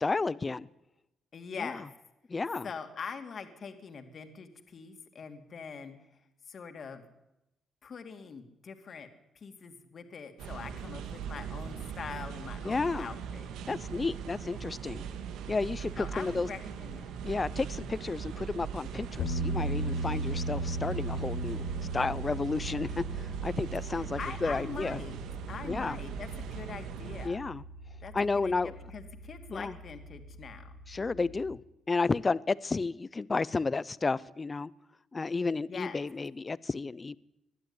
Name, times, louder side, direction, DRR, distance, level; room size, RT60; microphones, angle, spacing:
voice 1, 0.0-0.7 1.6-1.8 2.3-2.7 12.6-13.1 13.7-15.0 15.5-16.5 17.2-21.6 21.9-25.0 25.6-26.0 27.2-27.6 28.1-28.7 29.5-29.7 30.9-31.6 31.9-34.7 35.1-37.2, left 4 dB, 30° left, 20 dB, 0.7 m, -32 dB
voice 2, 1.3-1.9 2.6-6.0 6.5-7.0 7.8-9.1 9.3-13.4 16.0-17.1 23.9-25.2 25.5-27.4 28.0-28.1 28.4-30.7 35.7-36.0, left 5 dB, 50° left, 7 dB, 2.6 m, -43 dB
sound 1, 10.4-27.3, right 7 dB, 85° right, 1.9 m, -40 dB
sound 2, 19.2-31.5, right 1 dB, 85° left, 4.7 m, -38 dB
21.0 x 12.5 x 9.9 m, 0.91 s
cardioid pair, 90°, 0 cm